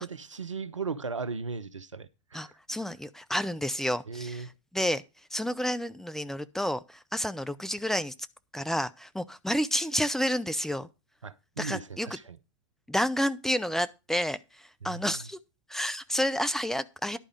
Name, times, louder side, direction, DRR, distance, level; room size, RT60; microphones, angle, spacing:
voice 1, 0.0-2.9 4.1-4.5 11.2-12.4 14.8-15.3, right 4 dB, 85° right, 0.8 m, -37 dB
voice 2, 2.3-4.4 4.7-5.0 5.3-8.1 8.5-10.9 11.6-12.2 12.9-15.4 15.7-17.2, equal, 5° left, 0.6 m, -30 dB
11.5 x 4.9 x 7.5 m
figure-of-eight pair, 90°, 16 cm